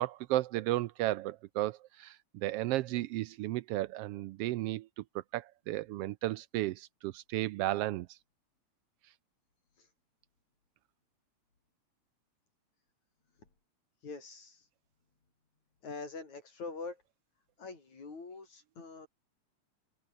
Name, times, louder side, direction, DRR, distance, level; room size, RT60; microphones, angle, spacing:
voice 1, 0.0-8.2, right 16 dB, 90° right, 1.3 m, -34 dB
voice 2, 14.0-14.7 15.8-17.0 17.6-19.1, left 4 dB, 75° left, 7.4 m, -44 dB
omnidirectional pair, 3.3 m